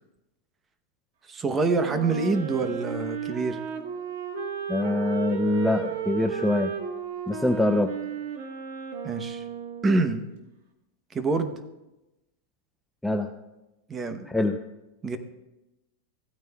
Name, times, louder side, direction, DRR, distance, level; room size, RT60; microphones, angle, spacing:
voice 1, 1.3-3.6 9.0-9.4 9.8-10.2 11.1-11.6 13.9-14.3 15.0-15.2, right 3 dB, 20° right, 9 dB, 0.8 m, -26 dB
Wind instrument woodwind instrument, 1.8-10.1, right 8 dB, 75° right, 1.4 m, -34 dB
voice 2, 4.7-6.7 7.3-7.9 13.0-13.3 14.3-14.6, left 2 dB, 5° left, 4 dB, 0.5 m, -24 dB
15.0 x 9.1 x 2.3 m, 0.98 s
supercardioid pair, 135°, 0 cm